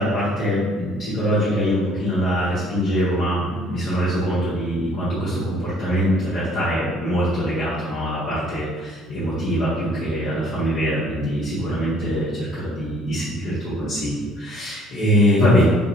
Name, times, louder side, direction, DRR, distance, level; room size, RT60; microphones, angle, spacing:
voice 1, 0.0-15.6, equal, 45° left, -11 dB, 0.9 m, -23 dB
3.4 x 2.5 x 2.8 m, 1.4 s
figure-of-eight pair, 55°, 0 cm